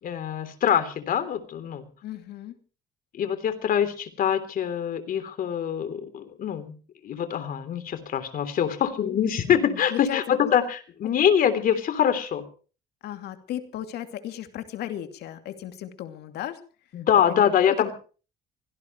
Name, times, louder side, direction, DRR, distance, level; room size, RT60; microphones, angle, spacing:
voice 1, 0.0-1.8 3.1-6.8 7.0-12.5 16.9-17.9, left 9 dB, 55° left, 10 dB, 3.4 m, -24 dB
voice 2, 2.0-2.6 9.5-10.5 13.0-16.6 17.3-17.5 17.8-17.9, left 11 dB, 75° left, 7 dB, 2.7 m, -35 dB
24.5 x 18.0 x 3.2 m, 0.38 s
cardioid pair, 110°, 17 cm